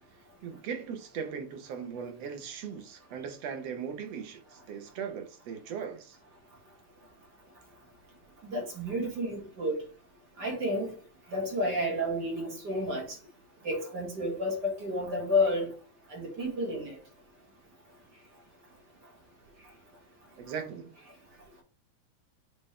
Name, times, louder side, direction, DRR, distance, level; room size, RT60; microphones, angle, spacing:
voice 1, 0.1-6.2 20.4-20.9, right 7 dB, 65° right, 1.9 m, -39 dB
voice 2, 8.4-9.8 10.4-10.9 11.3-13.2 13.6-15.7 16.1-17.0, left 1 dB, 40° right, 2.1 m, -30 dB
8.6 x 3.4 x 3.2 m
omnidirectional pair, 3.5 m